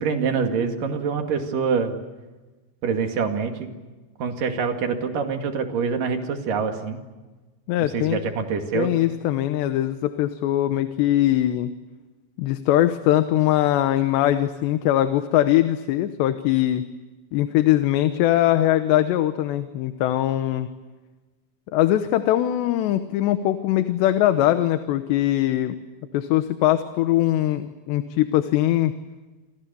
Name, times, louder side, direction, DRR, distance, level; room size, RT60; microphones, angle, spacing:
voice 1, 0.0-1.9 2.8-3.7 4.2-7.0 7.8-8.9, right 5 dB, 55° right, 5 dB, 3.6 m, -25 dB
voice 2, 7.7-8.2 8.7-11.7 12.4-16.8 17.3-20.7 21.7-25.7 26.1-28.9, left 13 dB, 85° left, 9 dB, 3.2 m, -21 dB
29.0 x 27.0 x 7.0 m, 1.2 s
omnidirectional pair, 4.9 m